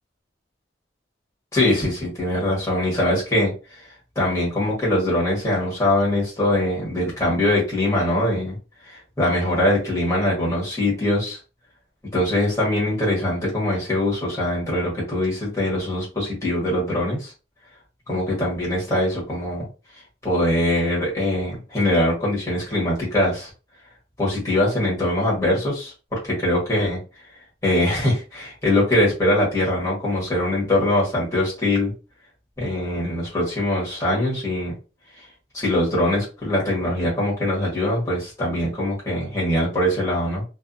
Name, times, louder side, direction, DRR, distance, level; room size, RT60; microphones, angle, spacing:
voice 1, 1.5-3.5 4.1-8.6 8.9-11.4 12.1-17.3 18.1-19.7 20.2-23.5 24.2-27.0 27.6-31.9 32.6-34.7 35.5-40.4, left 1 dB, 15° left, -5 dB, 1.2 m, -22 dB
2.4 x 2.4 x 2.5 m, 0.32 s
head